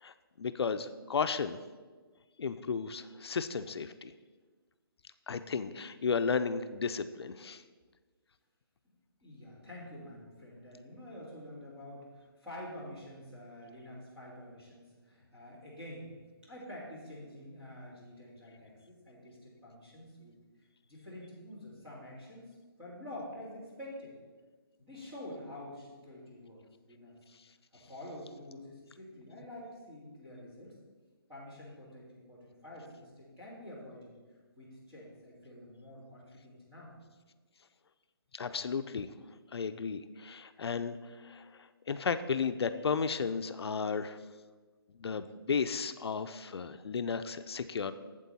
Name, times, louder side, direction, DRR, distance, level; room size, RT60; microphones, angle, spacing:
voice 1, 0.0-1.6 2.4-4.1 5.3-7.6 38.3-39.1 39.5-41.5 41.9-44.2 45.0-47.9, left 5 dB, 85° left, 11 dB, 0.5 m, -34 dB
voice 2, 9.2-16.1 16.4-20.4 20.9-24.1 24.8-27.1 27.7-30.7 31.3-34.1 34.6-36.9, left 1 dB, 5° right, -10 dB, 2.0 m, -48 dB
8.3 x 7.6 x 4.1 m, 1.4 s
hypercardioid pair, 175°, 13 cm